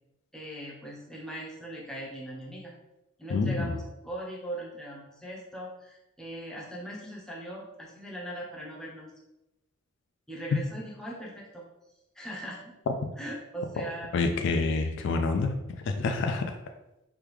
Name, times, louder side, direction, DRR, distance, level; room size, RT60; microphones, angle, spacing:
voice 1, 0.3-2.7 3.2-9.1 10.3-11.6 12.2-12.7 13.2-14.1, right 1 dB, 5° left, -4 dB, 0.6 m, -40 dB
voice 2, 3.3-3.8 14.1-16.4, left 3 dB, 60° left, 6 dB, 0.3 m, -27 dB
3.5 x 2.3 x 3.1 m, 0.93 s
head